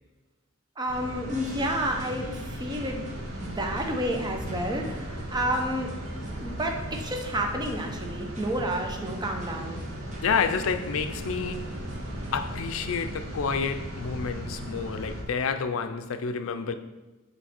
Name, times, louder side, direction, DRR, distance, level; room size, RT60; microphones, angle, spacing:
voice 1, 0.8-3.0 3.4-5.9 6.4-9.8, right 1 dB, 20° right, 0.7 m, -30 dB
sound 1, 0.9-15.2, equal, 80° right, 1.2 m, -37 dB
sound 2, 1.3-12.6, right 1 dB, 35° right, 1.0 m, -47 dB
voice 2, 10.2-11.7 12.3-16.7, left 5 dB, 75° left, 0.4 m, -29 dB
7.2 x 3.2 x 4.3 m
head